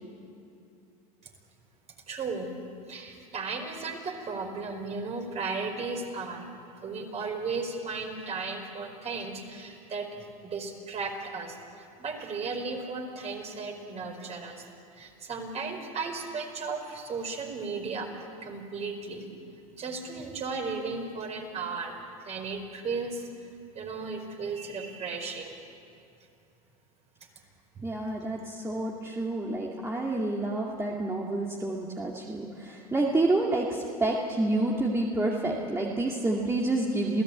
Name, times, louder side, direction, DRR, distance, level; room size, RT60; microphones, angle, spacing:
voice 1, 2.1-2.5 2.9-6.5 6.8-10.1 10.4-14.7 14.9-18.1 18.4-19.3 19.8-22.0 22.2-25.6 27.7-27.9, right 4 dB, 35° right, 3 dB, 4.9 m, -35 dB
voice 2, 27.8-37.2, right 2 dB, 15° right, -2 dB, 2.4 m, -28 dB
28.0 x 16.5 x 8.8 m, 2.6 s
hypercardioid pair, 100°, 19 cm